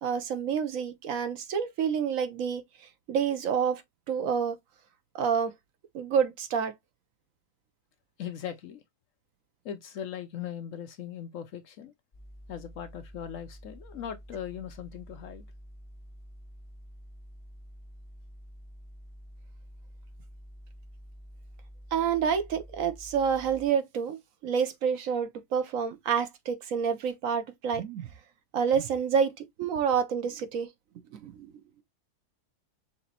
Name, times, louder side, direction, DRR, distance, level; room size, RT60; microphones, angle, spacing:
voice 1, 0.0-2.6 3.1-3.8 4.1-4.6 5.1-5.5 5.9-6.7 21.9-24.2 24.4-28.1 28.5-29.3 29.6-30.7 31.2-31.5, right 7 dB, 65° right, 1.0 m, -28 dB
voice 2, 8.2-8.8 9.6-11.9 12.5-15.4, left 9 dB, 65° left, 0.9 m, -39 dB
sound 1, 12.1-23.7, equal, 25° left, 0.9 m, -49 dB
5.9 x 3.0 x 2.8 m
omnidirectional pair, 1.6 m